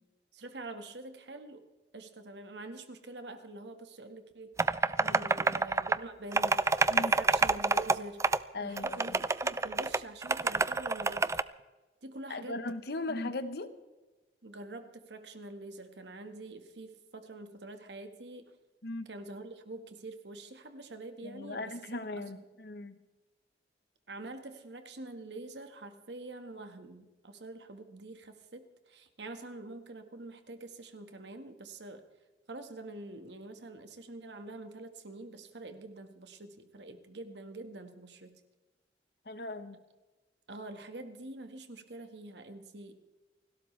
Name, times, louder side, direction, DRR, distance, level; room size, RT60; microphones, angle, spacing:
voice 1, 0.3-1.7 1.9-4.5 5.0-6.7 6.9-8.2 8.6-11.3 12.0-12.6 14.4-18.5 19.1-21.7 22.1-22.4 24.1-32.1 32.5-38.4 40.5-43.0, right 2 dB, 75° right, 8 dB, 1.6 m, -46 dB
sound 1, 4.6-6.0 6.3-7.9 8.2-8.4 8.8-11.4, right 3 dB, 15° right, 0.4 m, -27 dB
voice 2, 8.5-9.2 12.3-13.8 18.8-19.1 21.2-23.0 39.2-39.8, left 2 dB, 65° left, 11 dB, 1.1 m, -38 dB
30.0 x 12.5 x 3.3 m, 1.2 s
head